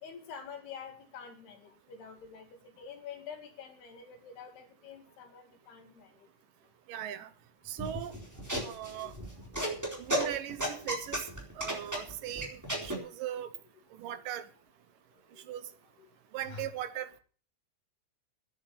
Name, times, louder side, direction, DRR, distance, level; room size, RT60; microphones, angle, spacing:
voice 1, 0.0-6.1 7.2-7.3 8.6-8.7 9.0-9.1 9.6-9.8 16.5-16.7, left 7 dB, 75° left, 4.5 m, -47 dB
voice 2, 6.9-7.3 7.7-8.2 8.6-9.1 10.0-11.3 11.6-13.5 13.9-14.5 15.5-15.6 16.3-17.2, right 11 dB, 70° right, 2.2 m, -39 dB
sound 1, 7.8-13.0, right 1 dB, 5° right, 3.7 m, -34 dB
10.0 x 9.3 x 8.6 m
omnidirectional pair, 4.6 m